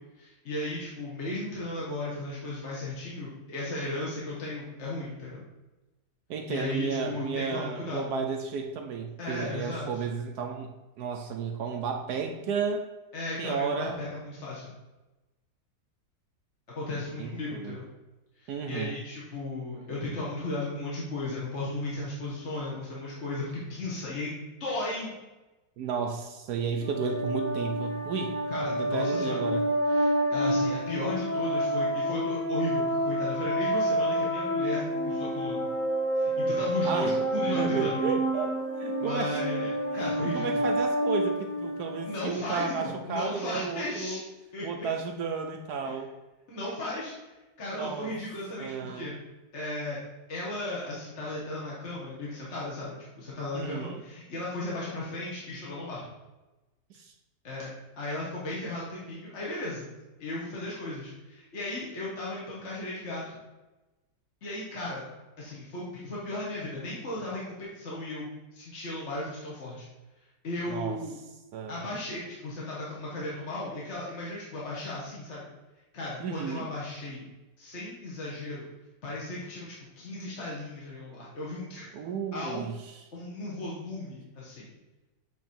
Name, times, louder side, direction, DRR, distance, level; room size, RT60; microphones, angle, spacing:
voice 1, 0.2-5.4 6.5-8.1 9.2-9.9 13.1-14.7 16.7-17.8 18.4-25.1 28.5-29.4 29.9-35.6 36.1-38.0 39.0-40.6 42.0-44.2 44.5-44.9 45.8-46.0 46.5-47.1 47.6-49.1 49.5-50.0 50.3-56.0 57.4-57.7 58.0-59.9 60.2-63.4 64.4-65.0 65.4-69.8 70.4-71.1 71.7-75.5 75.9-77.2 77.6-78.7 79.0-82.6 83.1-84.7, left 2 dB, 40° left, -6 dB, 1.6 m, -35 dB
voice 2, 6.3-12.9 13.4-14.0 17.2-17.8 18.5-19.0 25.8-28.4 28.7-29.7 36.8-37.1 37.5-39.4 39.9-44.2 44.6-46.1 47.7-48.1 48.6-49.1 53.5-54.0 56.9-57.1 70.7-71.0 71.5-71.8 76.2-76.7 81.9-82.9, right 5 dB, 70° right, 4 dB, 1.1 m, -33 dB
sound 1, 26.8-42.3, equal, 10° left, 0.6 m, -28 dB
8.3 x 3.4 x 4.3 m, 1.1 s
omnidirectional pair, 1.9 m